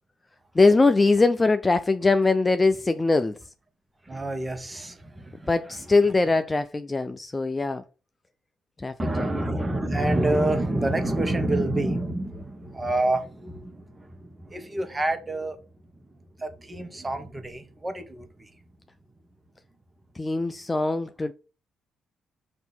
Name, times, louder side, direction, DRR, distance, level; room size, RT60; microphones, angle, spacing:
voice 1, 0.5-3.4 5.5-7.8 8.8-9.3 20.2-21.3, left 3 dB, 20° left, 0.4 m, -22 dB
voice 2, 4.1-5.5 9.0-15.6 16.4-18.5, right 1 dB, 15° right, 1.3 m, -27 dB
6.0 x 2.9 x 5.4 m
cardioid pair, 90°, 0 cm